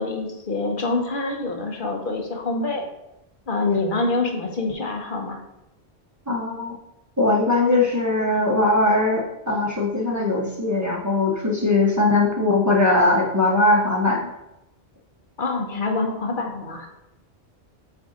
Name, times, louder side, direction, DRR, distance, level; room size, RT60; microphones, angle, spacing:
voice 1, 0.0-2.9 3.5-5.4 15.4-16.9, left 3 dB, 55° left, 2 dB, 1.0 m, -26 dB
voice 2, 6.3-6.7 7.2-14.3, left 2 dB, 20° right, -3 dB, 0.8 m, -20 dB
7.7 x 2.7 x 4.9 m, 0.92 s
omnidirectional pair, 1.1 m